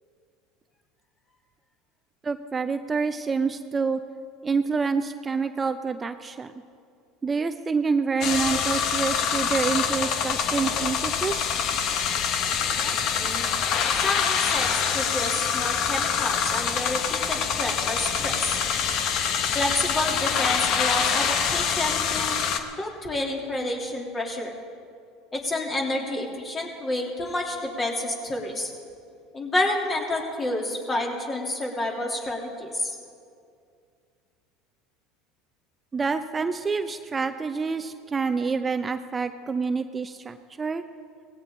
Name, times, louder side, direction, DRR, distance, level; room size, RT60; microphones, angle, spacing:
voice 1, 2.2-4.0 4.4-6.5 7.2-11.5 35.9-40.8, right 5 dB, 25° right, 9 dB, 0.6 m, -27 dB
sound 1, 8.2-22.6, left 7 dB, 55° left, 1.2 m, -25 dB
voice 2, 12.8-13.4 13.9-18.6 19.5-22.4 22.8-24.5 25.3-28.7 29.3-32.9, left 1 dB, 25° left, 0 dB, 3.1 m, -29 dB
18.5 x 16.0 x 3.8 m, 2.4 s
hypercardioid pair, 85°, 0 cm